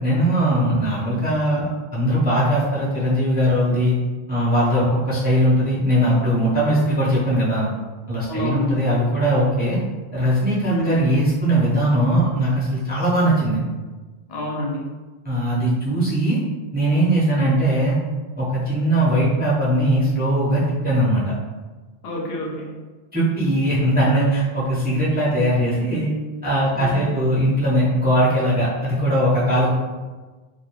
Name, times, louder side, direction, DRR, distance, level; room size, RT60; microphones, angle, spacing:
voice 1, 0.0-4.0 4.3-7.7 8.1-9.8 10.1-13.6 15.2-16.4 16.7-18.0 18.4-21.3 23.1-26.1 26.4-29.7, right 1 dB, 10° right, -8 dB, 0.5 m, -20 dB
voice 2, 8.3-8.8 10.6-11.0 14.3-14.9 22.0-22.7 26.7-27.1, equal, 75° left, -1 dB, 0.8 m, -28 dB
2.3 x 2.2 x 2.9 m, 1.3 s
omnidirectional pair, 1.1 m